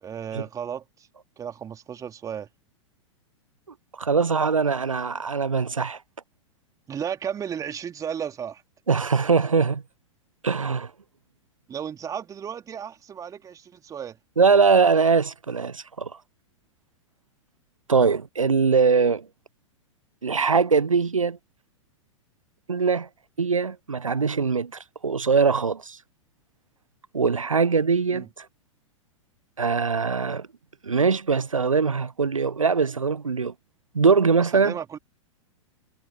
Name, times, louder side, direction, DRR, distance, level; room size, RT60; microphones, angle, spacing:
voice 1, 0.0-1.1 1.4-2.5 6.9-8.6 11.7-14.2 28.1-28.3 34.5-35.0, right 8 dB, 20° right, 2.7 m, -34 dB
voice 2, 4.0-6.0 8.9-9.8 10.4-10.9 14.4-16.1 17.9-19.3 20.2-21.4 22.7-23.1 23.4-24.7 25.0-26.0 27.1-28.5 29.6-30.5 30.8-33.5 33.9-34.8, right 5 dB, 85° right, 0.5 m, -22 dB
figure-of-eight pair, 100°, 16 cm